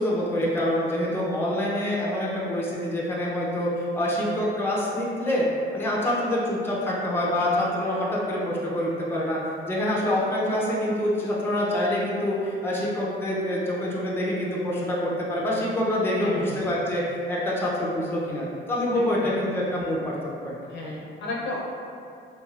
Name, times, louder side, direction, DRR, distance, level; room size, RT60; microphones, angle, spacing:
voice 1, 0.0-5.5 5.7-9.4 9.7-20.1 20.4-20.5, left 1 dB, 10° left, -5 dB, 0.5 m, -26 dB
voice 2, 16.2-16.7 18.9-19.3 20.7-21.6, left 2 dB, 65° left, -4 dB, 0.6 m, -34 dB
3.1 x 2.3 x 2.4 m, 2.4 s
cardioid pair, 90°, 20 cm